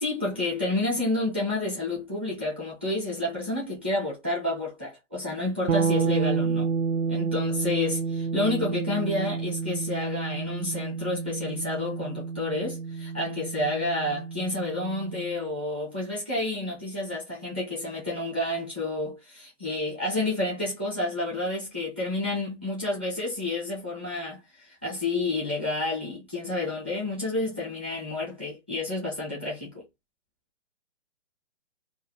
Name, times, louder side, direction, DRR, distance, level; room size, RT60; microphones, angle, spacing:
voice 1, 0.0-6.7 7.1-29.8, left 2 dB, 10° right, 0.4 m, -30 dB
sound 1, 5.7-15.5, right 5 dB, 80° right, 0.6 m, -30 dB
2.4 x 2.3 x 2.7 m
hypercardioid pair, 160°, 37 cm